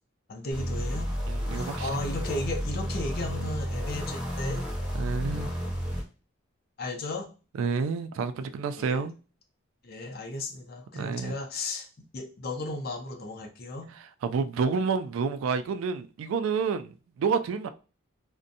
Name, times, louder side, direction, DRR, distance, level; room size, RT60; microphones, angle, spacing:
voice 1, 0.3-1.2 1.5-4.7 6.8-7.3 8.8-9.0 9.8-11.9 12.1-13.9, left 2 dB, 50° left, 0.5 m, -35 dB
sound 1, 0.5-6.0, equal, 5° right, 0.7 m, -31 dB
voice 2, 1.3-1.9 4.9-5.5 7.6-9.2 10.9-11.4 14.2-17.7, right 5 dB, 85° right, 0.3 m, -29 dB
2.5 x 2.1 x 2.6 m
head